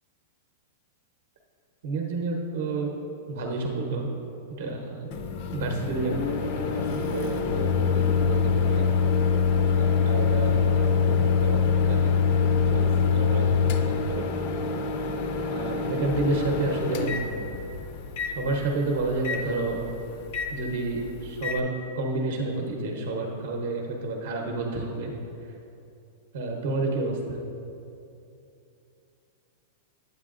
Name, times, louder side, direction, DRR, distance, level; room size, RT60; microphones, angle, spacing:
voice 1, 1.8-2.9 3.3-4.1 4.6-5.1 5.5-8.9 9.7-12.3 12.6-14.3 15.5-17.1 18.3-19.9 20.5-25.1 26.3-27.4, right 2 dB, 55° right, 1 dB, 0.8 m, -30 dB
Microwave oven, 5.1-21.6, left 5 dB, 40° left, 0.4 m, -25 dB
8.9 x 8.0 x 2.5 m, 2.6 s
supercardioid pair, 175°, 0 cm